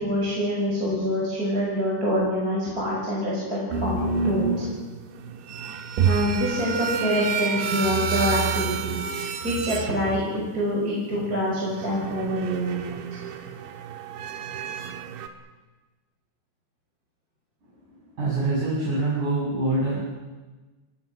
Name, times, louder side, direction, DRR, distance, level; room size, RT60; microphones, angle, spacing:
voice 1, 0.0-4.7 6.0-13.1, equal, 20° right, -5 dB, 6.5 m, -26 dB
sound 1, 3.7-10.6 11.6-15.3, right 6 dB, 85° right, 3.8 m, -29 dB
voice 2, 18.0-20.0, right 2 dB, 45° right, -6 dB, 9.0 m, -25 dB
29.0 x 20.5 x 6.3 m, 1.2 s
omnidirectional pair, 5.0 m